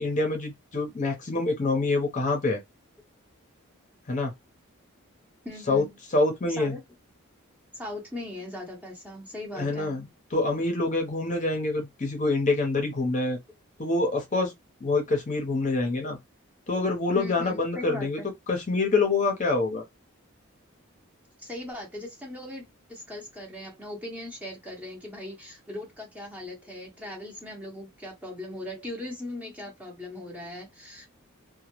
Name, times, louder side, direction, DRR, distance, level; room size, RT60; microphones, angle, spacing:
voice 1, 0.0-2.6 4.1-4.3 5.7-5.8 6.1-6.7 9.5-10.0 10.3-13.4 13.8-14.5 14.8-16.2 16.7-18.2 18.5-19.8, left 3 dB, 35° left, 0.6 m, -26 dB
voice 2, 5.4-6.0 6.5-6.8 7.7-9.9 17.1-18.3 21.4-31.1, left 1 dB, 5° right, 0.6 m, -39 dB
2.1 x 2.0 x 2.9 m
head